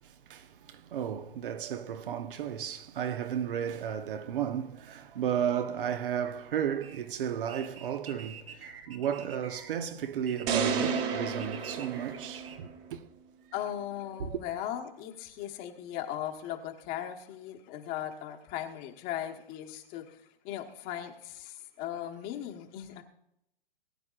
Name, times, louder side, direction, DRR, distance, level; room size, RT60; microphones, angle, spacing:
voice 1, 0.0-13.0 14.2-14.4, right 9 dB, 65° right, 1.1 m, -34 dB
sound 1, 6.2-12.6, right 6 dB, 80° right, 1.7 m, -48 dB
sound 2, 10.5-12.8, right 6 dB, 35° right, 1.5 m, -31 dB
voice 2, 13.5-23.0, left 11 dB, 30° left, 1.3 m, -38 dB
20.0 x 9.8 x 2.5 m
hypercardioid pair, 135°, 29 cm